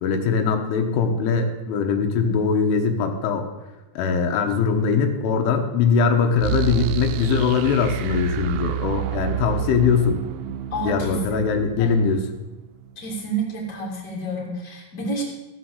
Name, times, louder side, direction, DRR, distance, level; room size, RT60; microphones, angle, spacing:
voice 1, 0.0-3.5 4.0-10.2 10.8-12.3, left 5 dB, 85° left, 5 dB, 3.6 m, -21 dB
sound 1, 6.4-13.2, right 16 dB, 85° right, 2.9 m, -30 dB
voice 2, 10.7-11.2 11.8-11.9 13.0-15.2, right 2 dB, 20° left, -3 dB, 2.8 m, -29 dB
15.5 x 5.9 x 7.9 m, 1.1 s
omnidirectional pair, 5.4 m